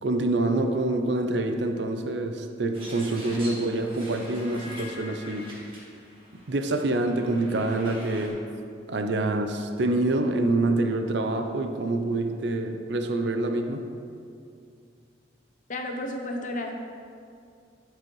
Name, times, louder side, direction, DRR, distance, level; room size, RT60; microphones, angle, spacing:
voice 1, 0.0-5.6 6.5-8.4 8.9-13.8, right 2 dB, 65° right, 6 dB, 0.6 m, -26 dB
sound 1, 2.7-8.3, equal, 30° right, 1.7 m, -44 dB
voice 2, 15.7-16.7, left 1 dB, 45° left, 2 dB, 0.7 m, -32 dB
12.0 x 4.8 x 3.2 m, 2.4 s
head